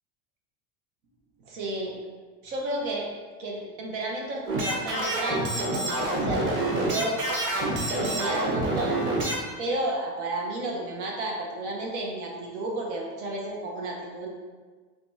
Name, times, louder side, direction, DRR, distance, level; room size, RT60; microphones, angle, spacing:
voice 1, 1.4-1.9 2.4-3.1 3.4-7.2 8.0-9.1 9.6-14.3, right 2 dB, 90° right, -1 dB, 1.2 m, -32 dB
sound 1, 4.5-9.4, right 1 dB, 35° right, 1.2 m, -27 dB
5.1 x 3.5 x 2.8 m, 1.4 s
supercardioid pair, 135°, 34 cm